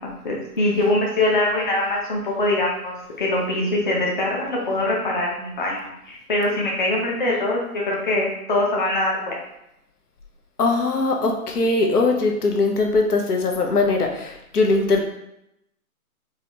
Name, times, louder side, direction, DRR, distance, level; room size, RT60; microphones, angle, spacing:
voice 1, 0.2-9.4, left 1 dB, 35° left, -3 dB, 0.6 m, -23 dB
voice 2, 10.6-15.0, left 3 dB, 80° left, 2 dB, 1.0 m, -20 dB
4.8 x 2.4 x 2.9 m, 0.81 s
hypercardioid pair, 160°, 46 cm